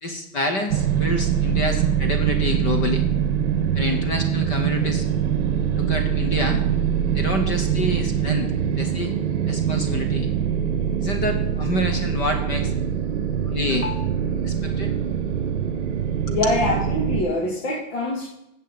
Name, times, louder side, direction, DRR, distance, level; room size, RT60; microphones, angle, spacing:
voice 1, 0.0-3.0 3.7-5.1 5.8-6.6 7.1-9.1 9.5-10.3 11.0-12.7 13.5-14.0 14.4-14.9 16.3-16.4, left 1 dB, 20° left, 5 dB, 0.8 m, -27 dB
sound 1, 0.7-17.2, right 8 dB, 50° right, 1.3 m, -23 dB
voice 2, 16.3-18.3, left 2 dB, 45° left, -4 dB, 2.8 m, -24 dB
14.0 x 8.2 x 4.0 m, 0.84 s
supercardioid pair, 170°, 43 cm